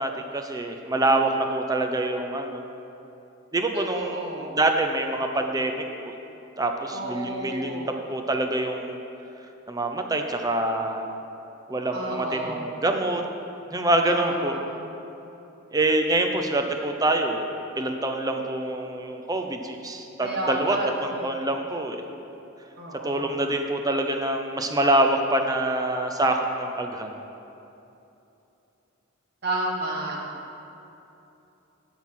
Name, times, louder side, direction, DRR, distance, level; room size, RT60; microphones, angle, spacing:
voice 1, 0.0-2.6 3.5-6.1 6.6-9.0 9.7-11.1 11.7-13.2 13.7-14.6 15.7-17.5 17.8-22.0 23.0-27.1, right 1 dB, 20° right, 4 dB, 0.6 m, -25 dB
voice 2, 3.7-4.6 6.9-7.8 11.9-12.6 14.1-14.8 20.2-21.3 22.8-23.3 29.4-30.2, right 1 dB, 50° right, -3 dB, 1.5 m, -32 dB
9.5 x 5.7 x 6.1 m, 2.9 s
head